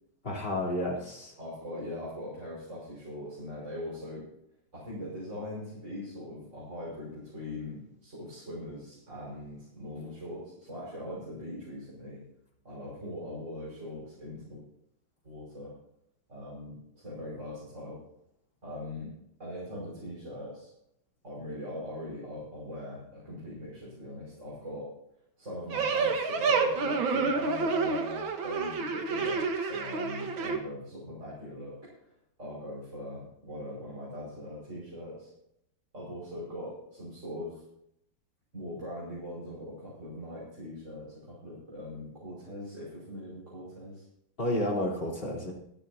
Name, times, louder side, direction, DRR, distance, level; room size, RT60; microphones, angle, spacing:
voice 1, 0.2-1.3 44.4-45.5, left 1 dB, 25° left, -3 dB, 3.9 m, -31 dB
voice 2, 1.4-4.2 4.7-12.2 12.6-14.6 15.2-15.7 16.3-18.0 18.6-19.1 19.4-20.7 21.2-24.9 25.4-31.8 32.0-32.1 32.4-35.3 35.9-37.6 38.5-44.0, left 1 dB, 35° right, -7 dB, 6.1 m, -41 dB
sound 1, 25.7-30.6, right 4 dB, 70° right, 2.3 m, -29 dB
26.0 x 10.5 x 2.9 m, 0.77 s
omnidirectional pair, 2.2 m